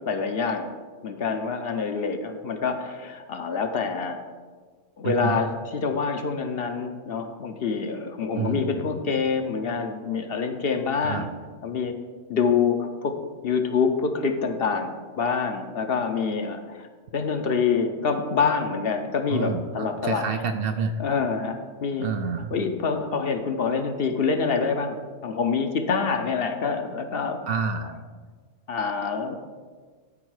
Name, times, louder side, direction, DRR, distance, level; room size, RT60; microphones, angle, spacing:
voice 1, 0.1-0.7 1.0-4.2 5.0-11.3 11.6-11.9 12.3-13.1 13.4-16.9 17.1-20.2 21.0-22.1 22.5-24.9 25.2-27.4 28.7-29.4, left 5 dB, 60° left, 6 dB, 0.9 m, -26 dB
voice 2, 5.0-5.4 8.4-8.8 11.0-11.3 19.3-21.0 22.0-22.5 27.5-27.9, right 5 dB, 60° right, 7 dB, 0.6 m, -28 dB
12.5 x 4.3 x 4.8 m, 1.5 s
omnidirectional pair, 1.2 m